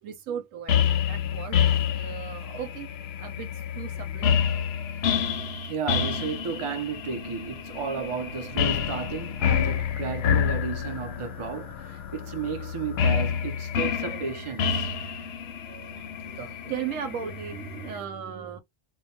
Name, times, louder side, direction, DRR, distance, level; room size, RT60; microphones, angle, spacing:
voice 1, 0.0-1.7 1.9-4.5 4.9-5.5 14.9-18.6, right 8 dB, 90° right, 1.0 m, -38 dB
sound 1, 0.7-18.0, left 8 dB, 65° left, 0.7 m, -28 dB
voice 2, 5.7-14.9, right 6 dB, 40° right, 0.4 m, -33 dB
2.3 x 2.2 x 2.7 m
omnidirectional pair, 1.3 m